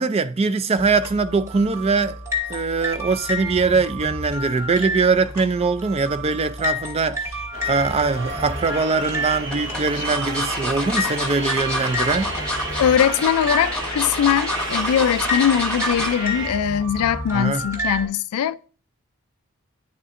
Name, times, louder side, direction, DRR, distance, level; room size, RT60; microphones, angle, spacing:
voice 1, 0.0-2.2 2.5-12.3 17.3-17.6, right 4 dB, 25° right, 0.3 m, -22 dB
sound 1, 0.8-18.1, left 1 dB, 10° right, 1.2 m, -31 dB
sound 2, 7.5-16.5, right 2 dB, 60° right, 1.1 m, -32 dB
sound 3, 8.3-8.8 9.5-16.2 16.6-16.8 17.1-17.2, left 1 dB, 5° left, 1.2 m, -28 dB
voice 2, 12.8-18.7, left 9 dB, 85° left, 0.3 m, -21 dB
9.8 x 4.2 x 2.5 m
head